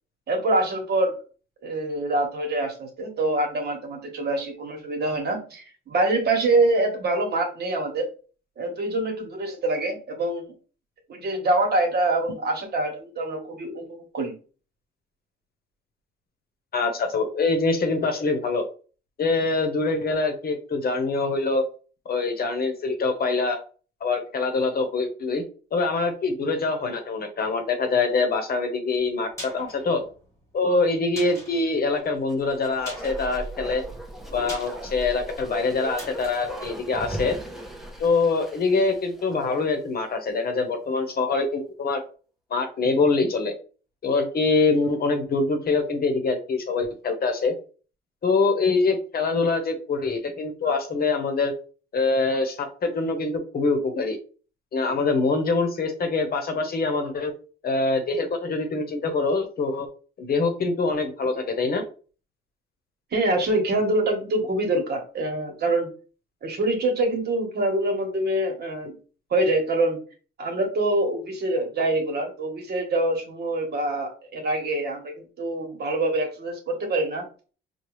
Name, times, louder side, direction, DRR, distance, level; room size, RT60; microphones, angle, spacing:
voice 1, 0.3-1.1 1.6-8.1 8.6-10.5 11.1-14.3 63.1-65.9 66.4-68.9 69.3-70.0 70.4-77.2, right 2 dB, 55° right, 2 dB, 1.3 m, -25 dB
voice 2, 16.7-18.6 19.2-21.6 22.0-23.6 24.0-25.4 25.7-30.0 30.5-33.8 34.3-37.4 38.0-42.0 42.5-43.5 44.0-47.5 48.2-51.5 51.9-54.2 54.7-57.3 57.6-59.9 60.2-61.8, left 3 dB, 50° left, 6 dB, 0.9 m, -24 dB
sound 1, 29.0-37.8 38.1-38.2, equal, 15° left, 1.4 m, -44 dB
Bark, 32.2-39.8 40.1-40.2, right 1 dB, ahead, 0.7 m, -38 dB
4.6 x 2.3 x 3.1 m, 0.38 s
cardioid pair, 90°, 20 cm